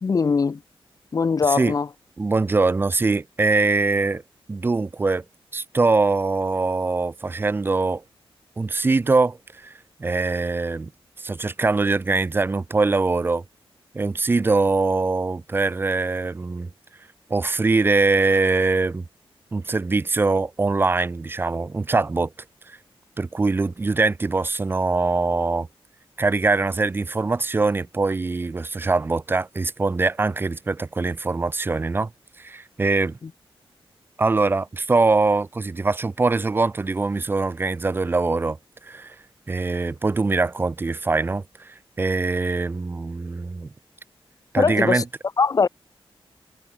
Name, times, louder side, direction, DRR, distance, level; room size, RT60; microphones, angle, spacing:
voice 1, 0.0-0.6 1.1-1.9 44.6-45.0 45.4-45.7, left 5 dB, 35° left, 0.5 m, -21 dB
voice 2, 2.2-4.2 4.5-5.2 5.5-8.0 8.6-9.7 10.0-10.9 11.2-13.4 13.9-16.7 17.3-19.0 19.5-22.3 22.7-22.8 23.2-25.7 26.2-32.1 32.4-33.2 34.2-38.6 38.8-39.2 39.5-43.7 44.5-45.0, right 3 dB, 20° right, 0.4 m, -22 dB
wide cardioid pair, 105°, 10 cm